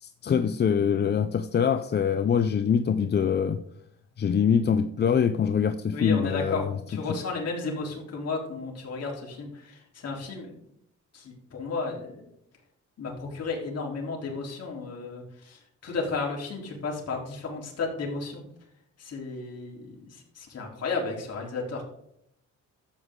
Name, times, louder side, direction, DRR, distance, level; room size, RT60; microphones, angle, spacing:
voice 1, 0.0-3.6 4.2-6.7 7.1-7.2, left 7 dB, 35° left, 0.5 m, -24 dB
voice 2, 5.9-6.6 6.9-10.6 11.1-12.3 13.0-18.4 19.0-21.8, left 4 dB, 55° left, 3.6 m, -33 dB
13.0 x 8.0 x 3.8 m
cardioid pair, 90°, 30 cm